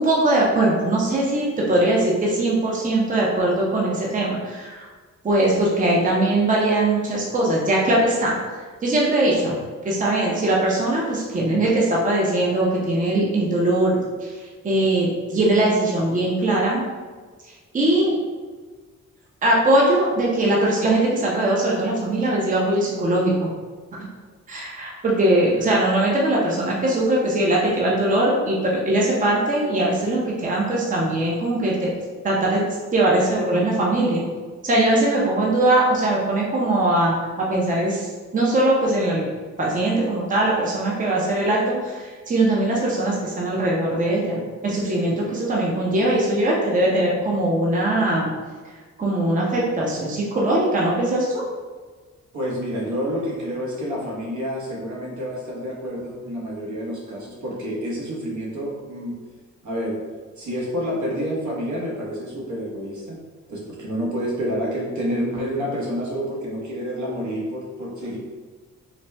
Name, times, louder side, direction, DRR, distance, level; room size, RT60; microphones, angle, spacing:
voice 1, 0.0-4.9 5.2-8.4 8.8-9.6 9.8-14.4 14.6-16.8 17.7-18.2 19.4-23.5 23.9-24.1 24.5-31.9 32.2-32.6 32.9-34.3 34.6-39.2 39.6-48.3 49.0-51.4, right 1 dB, 25° right, -3 dB, 0.6 m, -21 dB
voice 2, 52.3-59.2 59.6-60.0 60.4-63.2 63.5-68.2, equal, 70° right, -4 dB, 1.1 m, -28 dB
4.0 x 2.1 x 3.3 m, 1.4 s
cardioid pair, 120°, 30 cm